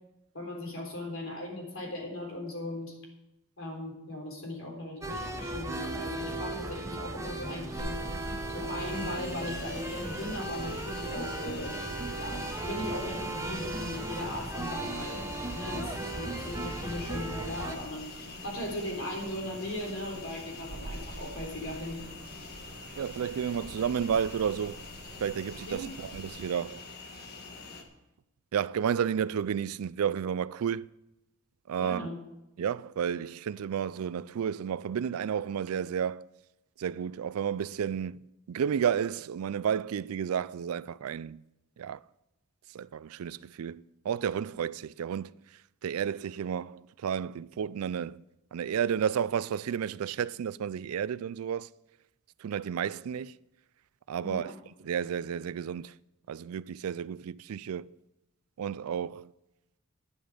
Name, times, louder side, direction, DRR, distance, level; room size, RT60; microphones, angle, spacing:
voice 1, 0.3-3.0 3.6-8.1 8.5-11.8 12.2-15.3 15.5-22.0 25.7-25.9 31.8-32.2 54.2-54.5, left 1 dB, 65° left, 3.8 m, -38 dB
sound 1, 5.0-17.8, right 2 dB, 15° right, 1.1 m, -36 dB
sound 2, 7.8-26.4, right 1 dB, 45° right, 1.4 m, -47 dB
sound 3, 8.8-27.8, left 4 dB, 45° left, 1.6 m, -46 dB
voice 2, 23.0-24.8 25.2-26.8 28.5-30.9 31.7-32.1 32.6-36.3 36.8-38.2 38.5-41.4 41.8-42.0 42.7-45.4 45.8-48.2 48.5-51.7 52.4-53.3 54.1-54.5 54.8-55.9 56.3-57.9 58.6-59.3, right 8 dB, 80° right, 0.4 m, -32 dB
11.5 x 10.0 x 5.1 m
head